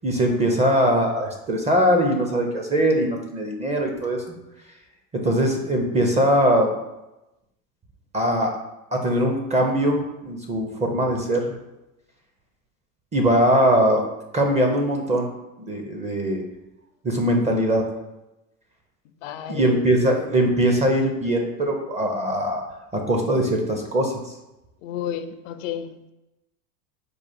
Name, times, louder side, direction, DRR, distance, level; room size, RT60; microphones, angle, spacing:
voice 1, 0.0-4.4 5.1-6.7 8.1-8.6 8.9-11.5 13.1-14.0 14.3-15.3 15.6-16.4 17.0-17.9 19.5-22.6 22.9-24.1, right 1 dB, 15° right, 2 dB, 0.5 m, -21 dB
voice 2, 19.2-19.9 24.8-25.9, left 9 dB, 55° left, 10 dB, 0.5 m, -31 dB
4.8 x 2.4 x 4.2 m, 0.96 s
hypercardioid pair, 105°, 47 cm